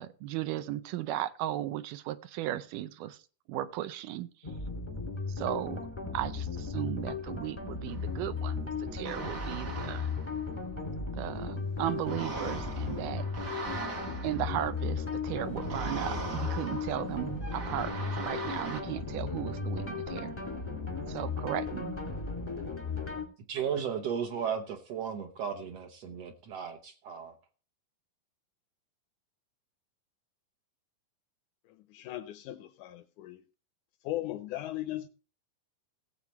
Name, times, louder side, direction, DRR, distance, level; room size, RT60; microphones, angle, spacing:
voice 1, 0.0-3.2 3.5-4.3 5.4-5.8 6.1-10.1 11.1-13.3 14.2-20.4 21.1-22.0, right 13 dB, 80° right, 2.2 m, -36 dB
sound 1, 4.4-23.3, left 4 dB, 15° left, 0.9 m, -36 dB
sound 2, 7.9-8.0 9.1-10.7 12.0-15.0 15.6-18.8, right 3 dB, 45° right, 1.1 m, -40 dB
voice 2, 23.5-27.3, right 7 dB, 65° right, 1.7 m, -35 dB
voice 3, 31.7-33.4 34.0-35.1, left 15 dB, 75° left, 1.9 m, -38 dB
17.5 x 7.5 x 3.0 m
omnidirectional pair, 3.8 m